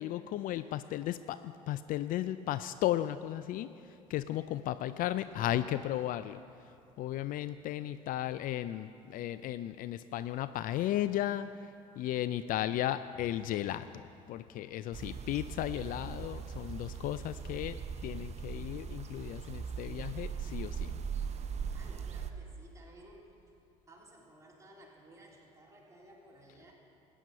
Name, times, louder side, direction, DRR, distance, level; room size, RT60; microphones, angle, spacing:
voice 1, 0.0-3.7 4.1-6.4 7.0-11.5 12.0-20.9, left 13 dB, 55° left, 13 dB, 0.4 m, -35 dB
sound 1, 14.9-22.3, right 6 dB, 40° right, 0.8 m, -40 dB
voice 2, 21.7-23.3 23.9-26.7, right 1 dB, 20° right, -3 dB, 3.1 m, -56 dB
13.5 x 9.1 x 5.7 m, 2.7 s
hypercardioid pair, 70°, 17 cm